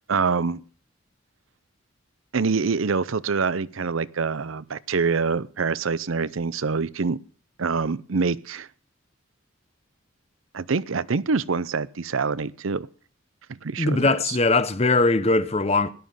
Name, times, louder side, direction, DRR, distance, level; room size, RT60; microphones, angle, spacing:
voice 1, 0.1-0.6 2.3-7.2 7.6-8.7 10.5-12.9 13.5-14.4, right 4 dB, 85° right, 0.7 m, -25 dB
voice 2, 13.8-15.9, left 3 dB, 30° left, 0.8 m, -21 dB
16.5 x 11.5 x 5.5 m
head